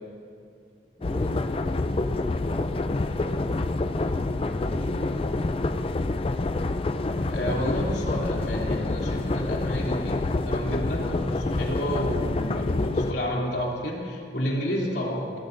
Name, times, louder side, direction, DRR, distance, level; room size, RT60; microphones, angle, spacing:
sound 1, 1.0-13.1, left 2 dB, 30° left, 0.4 m, -27 dB
voice 1, 1.0-5.9, equal, 10° left, 1 dB, 0.8 m, -41 dB
voice 2, 7.2-15.4, equal, 65° left, -3 dB, 3.0 m, -30 dB
23.0 x 17.5 x 2.6 m, 2.3 s
head